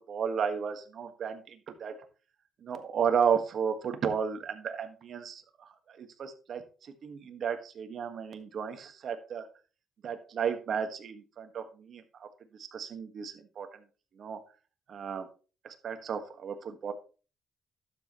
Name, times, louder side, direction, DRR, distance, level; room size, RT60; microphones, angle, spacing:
voice 1, 0.1-1.9 2.6-9.5 10.0-12.3 12.6-13.7 14.2-14.4 14.9-15.3 15.6-16.9, right 7 dB, 60° right, 7 dB, 1.6 m, -33 dB
12.0 x 7.5 x 3.1 m, 0.35 s
cardioid pair, 90°, 0 cm